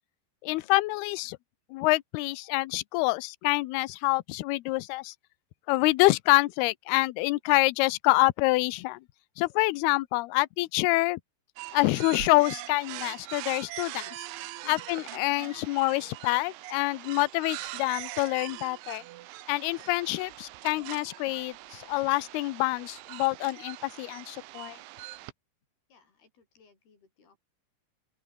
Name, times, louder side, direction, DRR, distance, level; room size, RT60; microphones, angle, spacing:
voice 1, 0.4-1.4 1.7-5.1 5.7-9.0 9.4-11.2 11.7-14.2 14.7-19.0 19.5-24.8, left 21 dB, 85° left, 2.3 m, -26 dB
sound 1, 11.6-25.3, right 17 dB, 80° right, 3.4 m, -42 dB
voice 2, 25.9-27.4, left 4 dB, 55° left, 9.5 m, -60 dB
open air
omnidirectional pair, 5.4 m